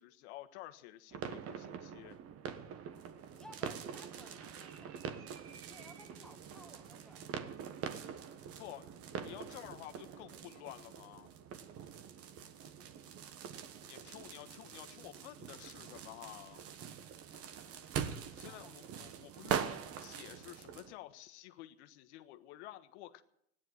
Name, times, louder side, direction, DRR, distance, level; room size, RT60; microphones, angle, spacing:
voice 1, 0.0-2.2 8.6-11.3 13.8-16.6 18.3-23.2, left 15 dB, 85° left, 9 dB, 1.3 m, -51 dB
sound 1, 1.1-20.9, right 8 dB, 45° right, 1.4 m, -44 dB
voice 2, 3.3-7.3 18.2-18.8, equal, ahead, 6 dB, 1.6 m, -58 dB
16.5 x 10.5 x 7.9 m, 0.74 s
supercardioid pair, 130°, 33 cm